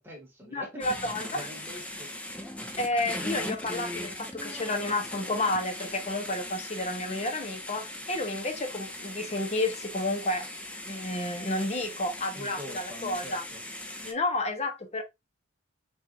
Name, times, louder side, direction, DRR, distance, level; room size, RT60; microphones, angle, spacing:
voice 1, 0.0-1.1 1.3-2.1 12.3-13.6, equal, 10° right, 1.7 m, -44 dB
voice 2, 0.5-1.2 2.8-10.5 10.9-13.4 14.0-15.0, left 2 dB, 35° left, 1.0 m, -31 dB
sound 1, 0.8-14.1, left 1 dB, 5° left, 0.7 m, -39 dB
5.9 x 2.6 x 2.7 m
head